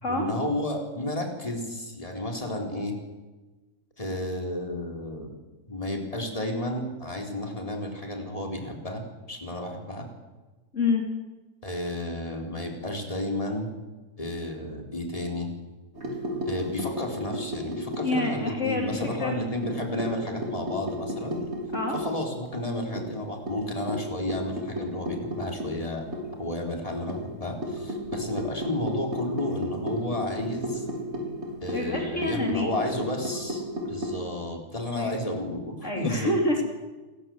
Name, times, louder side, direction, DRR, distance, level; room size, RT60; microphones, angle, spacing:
voice 1, 0.1-3.0 4.0-5.3 5.7-10.1 11.6-13.7 14.2-15.5 16.4-21.4 21.9-26.1 26.4-30.9 31.6-33.6 33.9-36.3, left 1 dB, 20° left, 2 dB, 4.2 m, -32 dB
sound 1, 15.9-18.6 19.0-22.2 22.5-22.6 23.0-26.5 27.1-34.2, equal, 45° right, 4.5 m, -34 dB
voice 2, 18.0-19.3 21.7-22.0 31.7-32.7 34.9-35.1 35.8-36.6, left 2 dB, 50° left, 1 dB, 3.3 m, -27 dB
29.5 x 17.0 x 8.0 m, 1.2 s
omnidirectional pair, 1.6 m